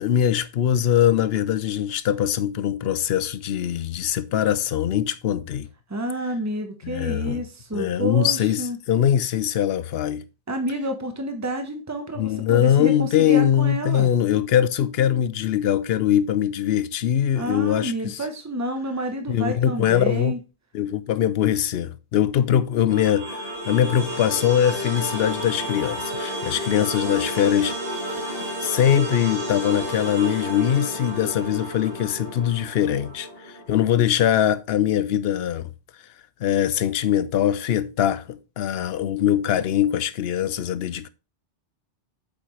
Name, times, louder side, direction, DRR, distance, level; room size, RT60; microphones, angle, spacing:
voice 1, 0.0-5.7 6.8-7.4 7.7-10.2 12.2-18.2 19.3-20.3 20.7-27.8 28.6-33.3 33.7-35.7 36.4-41.1, left 10 dB, 65° left, 0.8 m, -22 dB
voice 2, 5.9-8.8 10.5-14.1 17.3-20.4, right 1 dB, 15° right, 1.0 m, -29 dB
sound 1, 22.9-33.9, equal, 55° right, 4.3 m, -31 dB
7.9 x 5.9 x 3.2 m
omnidirectional pair, 1.2 m